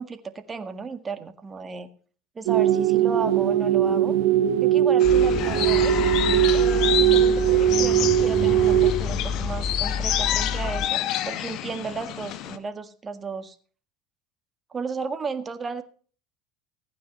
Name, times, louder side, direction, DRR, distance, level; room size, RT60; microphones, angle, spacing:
voice 1, 0.0-1.9 2.3-4.1 4.6-5.9 6.5-13.5 14.7-15.8, right 5 dB, 25° right, 10 dB, 1.7 m, -34 dB
sound 1, 2.5-8.9, right 11 dB, 65° right, 1.1 m, -20 dB
sound 2, 5.0-12.6, left 12 dB, 55° left, 1.2 m, -29 dB
sound 3, 5.0-10.9, left 5 dB, 20° left, 1.3 m, -30 dB
15.5 x 9.4 x 5.3 m, 0.42 s
hypercardioid pair, 75°, 0 cm